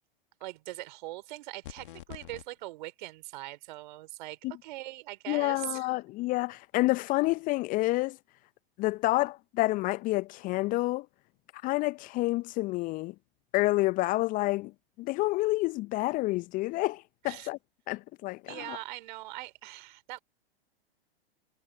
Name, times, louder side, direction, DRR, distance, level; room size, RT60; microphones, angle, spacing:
voice 1, 0.4-5.9 17.2-17.5 18.5-20.2, right 18 dB, 50° right, 3.6 m, -41 dB
sound 1, 1.6-2.5, left 13 dB, 55° left, 1.8 m, -45 dB
voice 2, 5.3-8.2 8.8-11.1 11.6-13.1 13.5-14.7 15.0-17.6 17.9-18.8, left 20 dB, 25° left, 0.7 m, -29 dB
figure-of-eight pair, 105°, 31 cm